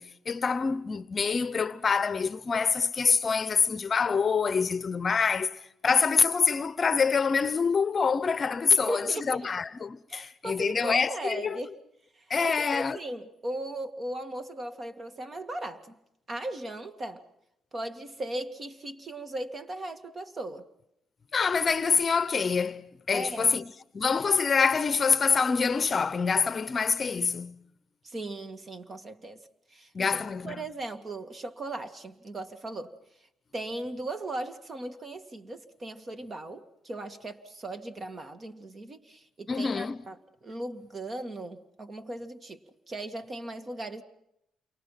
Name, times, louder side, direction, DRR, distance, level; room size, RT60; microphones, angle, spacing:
voice 1, 0.0-11.6 12.3-13.0 21.3-27.6 29.9-30.6 39.5-40.0, left 5 dB, 40° left, 0.8 m, -26 dB
voice 2, 8.7-9.5 10.1-11.7 12.2-16.0 16.3-17.3 17.7-20.6 23.1-23.6 28.0-29.4 29.7-30.2 30.4-33.0 33.5-42.6 42.9-44.0, right 1 dB, 35° right, 2.2 m, -37 dB
29.0 x 24.0 x 5.9 m
cardioid pair, 90°, 0 cm